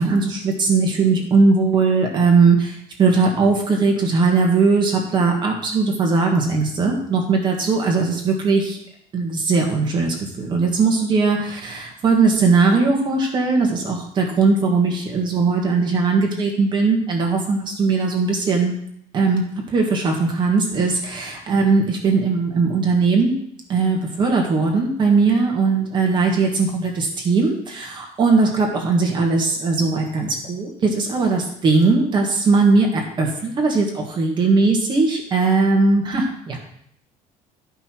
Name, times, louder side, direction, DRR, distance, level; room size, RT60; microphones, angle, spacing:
voice 1, 0.0-8.8 9.1-18.7 19.1-23.4 23.7-36.6, right 4 dB, 30° right, 1 dB, 1.8 m, -19 dB
11.5 x 5.6 x 4.5 m, 0.69 s
cardioid pair, 170°, 15 cm